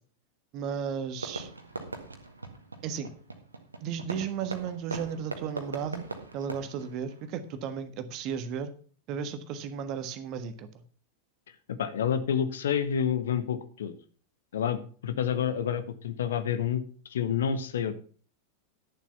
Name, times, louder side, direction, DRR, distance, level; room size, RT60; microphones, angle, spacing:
voice 1, 0.5-1.5 2.8-3.1 3.8-6.1 6.3-8.7 9.1-10.8, right 7 dB, 40° right, 11 dB, 1.4 m, -34 dB
Fireworks, 1.2-7.7, right 3 dB, 80° right, 1.7 m, -41 dB
voice 2, 11.7-13.9 14.5-16.8 17.1-17.9, left 8 dB, 65° left, 11 dB, 1.2 m, -28 dB
11.5 x 7.4 x 5.7 m, 0.42 s
figure-of-eight pair, 90°, 0 cm